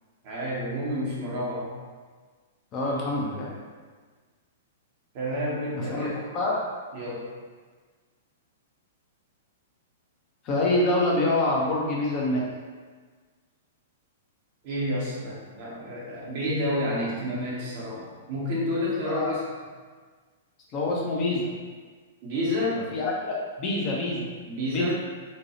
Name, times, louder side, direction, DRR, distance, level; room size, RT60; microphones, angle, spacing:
voice 1, 0.2-1.7 5.1-6.2 6.9-7.3 14.6-19.4 22.2-22.8 24.5-24.9, left 1 dB, 45° right, -6 dB, 0.9 m, -29 dB
voice 2, 2.7-3.5 5.7-6.1 6.3-6.6 10.4-12.4 19.0-19.3 20.7-21.5 22.9-24.3 24.7-24.9, left 2 dB, 30° left, -4 dB, 0.6 m, -26 dB
2.9 x 2.2 x 2.9 m, 1.5 s
figure-of-eight pair, 105°, 0 cm